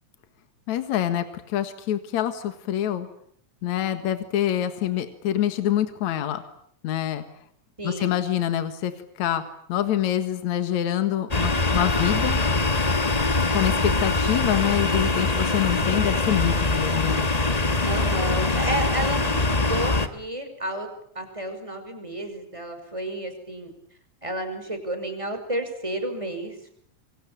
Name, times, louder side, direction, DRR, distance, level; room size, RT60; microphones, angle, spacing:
voice 1, 0.7-3.1 3.6-6.4 6.8-7.2 7.8-8.9 9.2-9.4 9.7-12.4 13.5-17.2, left 11 dB, 70° left, 9 dB, 2.9 m, -26 dB
voice 2, 7.8-8.2 17.8-20.9 21.1-23.7 24.2-26.8, right 1 dB, 10° right, 6 dB, 5.8 m, -31 dB
sound 1, 11.3-20.1, left 3 dB, 40° left, 0.5 m, -23 dB
28.0 x 24.5 x 8.7 m, 0.66 s
omnidirectional pair, 3.5 m